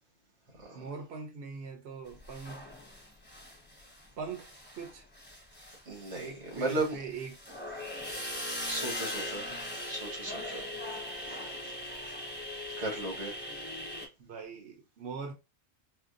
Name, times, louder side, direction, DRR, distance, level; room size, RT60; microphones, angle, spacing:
voice 1, 0.7-2.7 4.2-4.5 4.8-5.0 6.1-7.4 9.5-9.7 14.2-15.3, right 5 dB, 65° right, 1.0 m, -42 dB
sound 1, 2.2-4.0 4.3-14.1, left 1 dB, 10° left, 1.0 m, -40 dB
voice 2, 5.9-7.0 8.1-9.5 9.9-10.6 12.8-13.3, right 2 dB, 90° right, 1.7 m, -36 dB
4.3 x 2.2 x 2.5 m
omnidirectional pair, 1.2 m